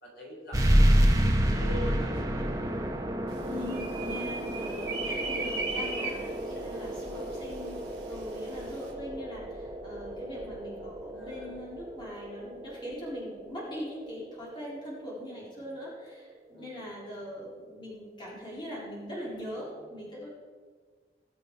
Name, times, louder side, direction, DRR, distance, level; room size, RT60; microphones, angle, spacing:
voice 1, 0.0-2.6 5.9-7.0 11.1-11.6 16.5-16.9, left 1 dB, 60° left, -3 dB, 3.9 m, -44 dB
sound 1, 0.5-15.6, equal, 20° right, 1.1 m, -30 dB
sound 2, 3.3-8.9, right 3 dB, 65° right, 3.4 m, -38 dB
voice 2, 3.5-20.3, left 1 dB, 25° left, -6 dB, 4.0 m, -41 dB
20.5 x 6.9 x 4.7 m, 1.6 s
head